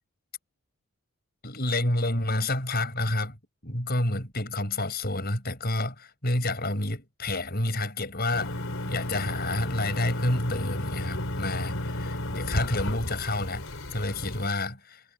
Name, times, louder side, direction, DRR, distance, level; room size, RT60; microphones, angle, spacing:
voice 1, 1.4-3.4 3.6-13.7 13.9-15.0, left 2 dB, 45° left, 7.7 m, -29 dB
sound 1, 8.3-14.5, left 1 dB, 60° left, 4.0 m, -33 dB
head